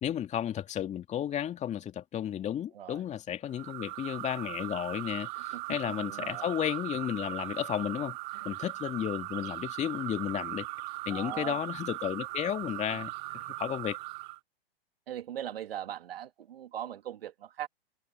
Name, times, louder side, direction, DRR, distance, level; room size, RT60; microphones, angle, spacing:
voice 1, 0.0-8.2 8.4-10.7 11.1-14.0, left 10 dB, 25° left, 2.4 m, -33 dB
sound 1, 3.5-14.4, right 23 dB, 50° right, 3.4 m, -39 dB
voice 2, 6.0-6.5 11.1-11.6 15.1-17.7, right 11 dB, 70° right, 3.1 m, -40 dB
hypercardioid pair, 120°, 30 cm